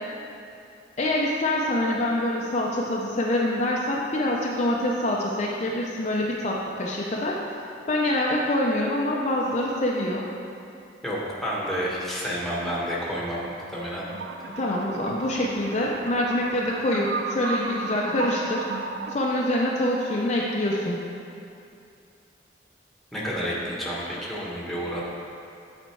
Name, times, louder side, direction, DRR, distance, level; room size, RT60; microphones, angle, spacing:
voice 1, 1.0-7.4 7.9-10.2 14.6-18.6 19.1-21.0, left 1 dB, 40° left, -3 dB, 0.6 m, -25 dB
voice 2, 11.0-14.0 14.5-14.6 23.1-25.0, equal, ahead, -5 dB, 1.2 m, -30 dB
sound 1, 14.1-19.2, right 4 dB, 75° right, 0.4 m, -34 dB
8.9 x 4.3 x 4.5 m, 2.6 s
head